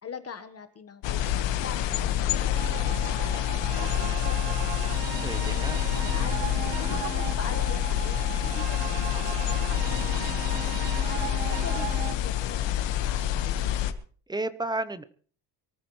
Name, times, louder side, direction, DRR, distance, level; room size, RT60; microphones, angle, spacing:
voice 1, 0.0-3.5 3.7-6.4 6.8-10.7 11.1-13.8, left 7 dB, 35° left, 8 dB, 1.2 m, -43 dB
sound 1, 1.0-13.9, left 11 dB, 75° left, 1.5 m, -27 dB
sound 2, 2.5-12.1, right 15 dB, 75° right, 0.9 m, -37 dB
sound 3, 5.1-11.0, left 8 dB, 55° left, 2.4 m, -48 dB
voice 2, 5.2-5.8 14.3-15.0, right 2 dB, 10° right, 13 dB, 0.7 m, -32 dB
23.5 x 14.0 x 3.1 m, 0.43 s
cardioid pair, 155°, 44 cm